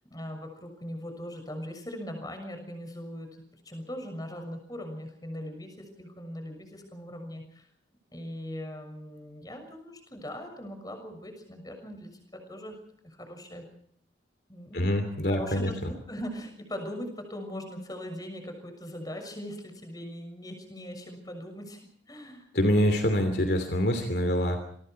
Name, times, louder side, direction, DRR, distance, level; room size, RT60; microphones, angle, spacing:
voice 1, 0.1-7.7 8.1-12.8 13.0-13.6 14.5-15.0 15.3-21.8 22.1-22.5, equal, 20° left, 6 dB, 6.5 m, -40 dB
voice 2, 14.7-15.7 22.5-24.6, equal, 55° left, 7 dB, 2.9 m, -25 dB
28.5 x 23.5 x 4.7 m, 0.63 s
head